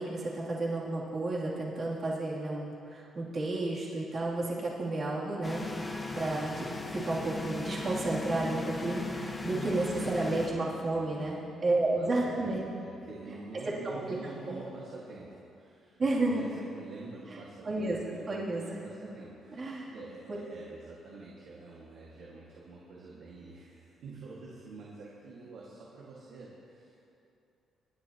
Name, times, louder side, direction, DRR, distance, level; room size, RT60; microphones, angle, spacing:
voice 1, 0.0-5.9 6.1-12.6 13.8-14.2 14.5-14.6 16.0-16.4 17.3-17.4 17.6-18.0 18.3-18.6 19.6-20.0, right 2 dB, 45° right, -6 dB, 2.9 m, -32 dB
sound 1, 5.4-10.5, left 2 dB, 25° left, 1.3 m, -37 dB
voice 2, 9.4-27.0, right 3 dB, 75° right, -5 dB, 1.9 m, -47 dB
24.0 x 10.5 x 3.0 m, 2.7 s
cardioid pair, 90°, 0 cm